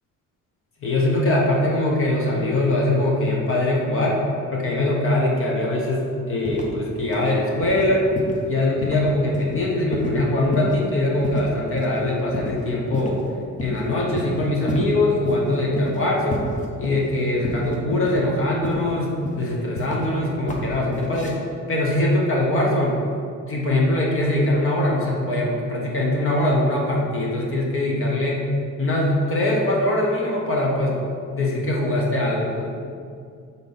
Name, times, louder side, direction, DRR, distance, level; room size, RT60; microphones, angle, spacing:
voice 1, 0.8-4.2 4.5-8.1 8.4-13.2 13.6-16.5 16.8-21.4 21.7-23.0 23.5-28.5 28.8-31.0 31.3-32.6, left 1 dB, 45° left, -2 dB, 1.3 m, -22 dB
sound 1, 6.4-6.8 7.1-7.3 7.6-7.9 8.2-8.5 8.8-9.0 9.3-9.6 9.9-10.2 10.5-10.9 11.2-11.5 11.8-11.9 12.3-12.6 12.9-13.3 13.6-13.8 14.2-14.9 15.3-15.4 15.8-16.0 16.3-17.2 17.4-18.2 18.6-18.9 19.2-20.1 20.5-20.7 20.9-21.3, left 1 dB, 25° left, 0.9 m, -30 dB
6.1 x 4.0 x 5.5 m, 2.3 s
cardioid pair, 145°, 29 cm